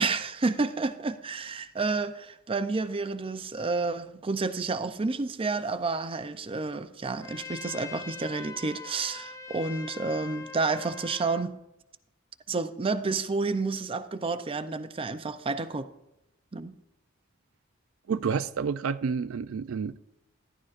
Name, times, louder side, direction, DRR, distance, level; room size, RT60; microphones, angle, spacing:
voice 1, 0.0-11.6 12.5-15.9 16.5-16.7, right 3 dB, 25° right, 0.5 m, -30 dB
Trumpet, 7.2-11.5, left 4 dB, 15° left, 0.7 m, -42 dB
voice 2, 18.1-20.0, right 6 dB, 80° right, 0.4 m, -29 dB
14.0 x 11.0 x 2.5 m
head